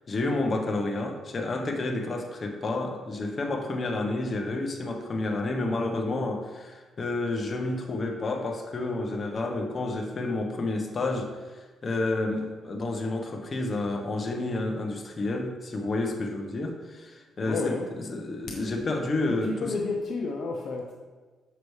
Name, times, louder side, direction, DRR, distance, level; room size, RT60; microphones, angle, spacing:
voice 1, 0.1-19.7, left 2 dB, 40° left, 2 dB, 1.0 m, -30 dB
voice 2, 17.4-17.9 19.3-20.9, left 3 dB, 60° left, 0 dB, 0.7 m, -31 dB
6.9 x 5.9 x 3.2 m, 1.4 s
cardioid pair, 90°, 0 cm